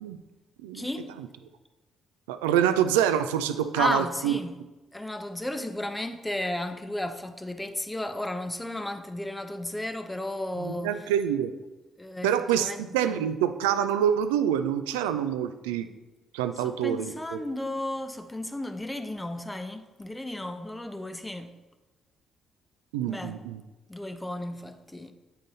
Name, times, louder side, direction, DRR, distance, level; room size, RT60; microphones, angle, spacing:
voice 1, 0.7-1.1 3.8-4.6 4.9-11.1 12.0-13.3 16.6-21.5 23.1-23.4 23.9-25.1, left 1 dB, 10° left, 0.7 m, -34 dB
voice 2, 2.3-4.3 10.6-11.5 12.2-15.9 16.3-17.1 22.9-23.6, right 9 dB, 80° right, 0.4 m, -26 dB
8.8 x 3.8 x 4.0 m
hypercardioid pair, 45°, 0 cm